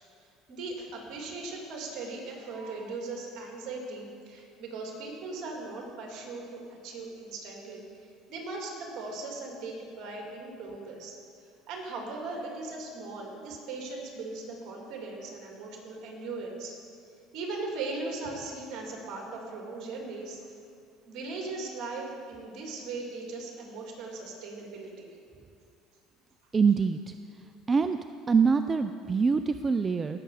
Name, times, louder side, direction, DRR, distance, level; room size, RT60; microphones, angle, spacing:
voice 1, 0.5-7.8 8.3-11.2 11.7-16.7 17.3-20.4 21.1-25.2, right 3 dB, 60° right, 0 dB, 2.7 m, -38 dB
voice 2, 26.5-27.1 27.7-28.0 28.3-30.2, right 5 dB, 30° right, 9 dB, 0.4 m, -24 dB
17.5 x 6.9 x 4.8 m, 2.4 s
supercardioid pair, 90°, 0 cm